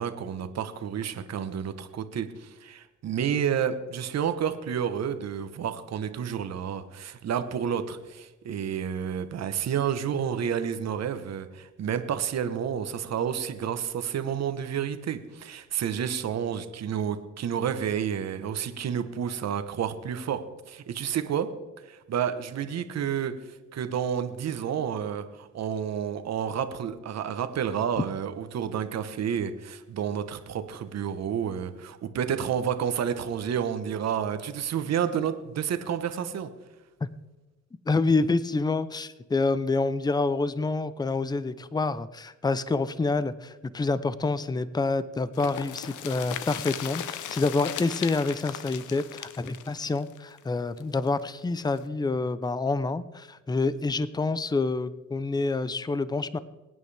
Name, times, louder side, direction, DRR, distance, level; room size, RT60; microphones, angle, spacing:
voice 1, 0.0-21.5 21.8-36.5, right 8 dB, 60° right, 10 dB, 1.1 m, -30 dB
voice 2, 37.9-56.4, left 3 dB, 15° left, 15 dB, 0.6 m, -27 dB
sound 1, 45.3-51.1 51.4-51.5 51.8-51.9, left 11 dB, 80° left, 0.8 m, -37 dB
22.5 x 9.4 x 3.4 m, 1.1 s
cardioid pair, 90°, 30 cm